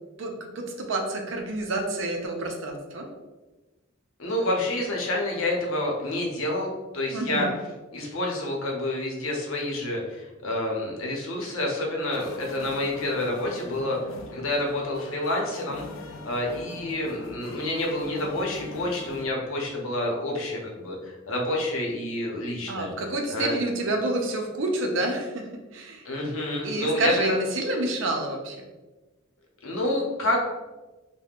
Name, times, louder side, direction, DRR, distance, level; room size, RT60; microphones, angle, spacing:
voice 1, 0.2-3.1 7.1-7.5 22.7-26.0 26.6-28.7, right 2 dB, 65° right, 3 dB, 0.5 m, -28 dB
voice 2, 4.2-7.5 7.9-14.0 14.3-15.8 16.2-22.9 23.3-23.6 26.0-27.4 29.6-30.4, left 1 dB, 90° left, -1 dB, 0.7 m, -28 dB
sound 1, 12.1-19.3, left 3 dB, 70° left, 0.3 m, -42 dB
2.3 x 2.1 x 3.4 m, 1.2 s
head